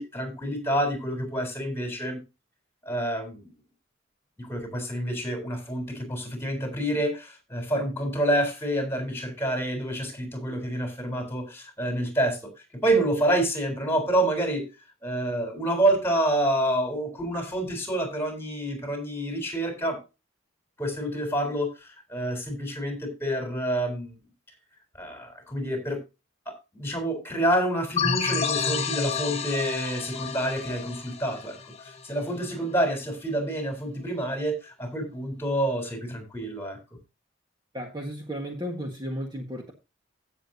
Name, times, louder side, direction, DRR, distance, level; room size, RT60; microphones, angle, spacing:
voice 1, 0.0-2.2 2.8-3.5 4.4-12.5 12.8-14.7 15.0-20.0 20.8-24.2 25.0-26.0 26.5-36.8, right 1 dB, 10° left, 3.8 m, -28 dB
sound 1, 28.0-32.4, left 6 dB, 30° left, 0.9 m, -30 dB
voice 2, 37.7-39.7, equal, 20° right, 1.5 m, -34 dB
16.0 x 6.8 x 2.7 m
head